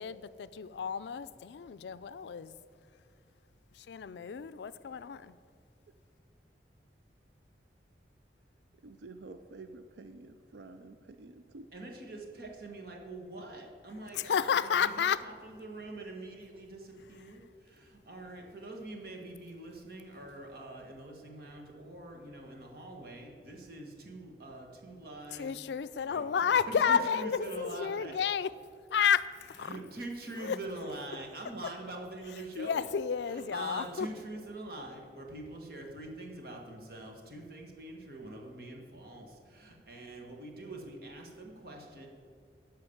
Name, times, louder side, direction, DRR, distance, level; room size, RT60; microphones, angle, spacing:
voice 1, 0.0-2.6 3.8-5.3 14.1-15.2 25.3-28.5 28.9-29.7 30.4-30.6 32.6-34.1, left 7 dB, 75° left, 15 dB, 0.4 m, -31 dB
voice 2, 8.8-11.7, right 3 dB, 80° right, 9 dB, 0.5 m, -49 dB
voice 3, 11.7-25.6 26.1-26.2 26.5-28.1 29.6-32.9 33.3-42.1, right 2 dB, 60° right, 1 dB, 1.6 m, -44 dB
10.5 x 5.6 x 7.1 m, 2.2 s
head